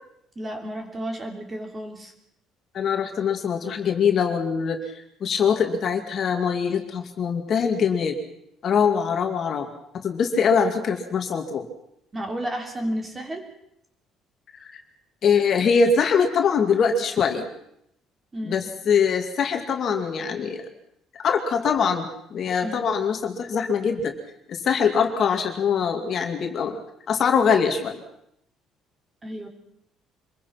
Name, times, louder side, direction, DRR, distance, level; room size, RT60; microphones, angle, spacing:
voice 1, 0.3-2.1 12.1-13.5 18.3-18.7 22.6-22.9 29.2-29.5, equal, 15° right, 4 dB, 3.2 m, -32 dB
voice 2, 2.7-4.9 5.2-8.2 8.6-9.7 9.9-11.7 14.6-14.7 15.2-17.5 18.4-20.6 21.2-24.1 24.5-26.8 27.1-28.0, left 6 dB, 35° left, 4 dB, 2.4 m, -23 dB
25.5 x 22.0 x 5.9 m, 0.77 s
cardioid pair, 175°, 0 cm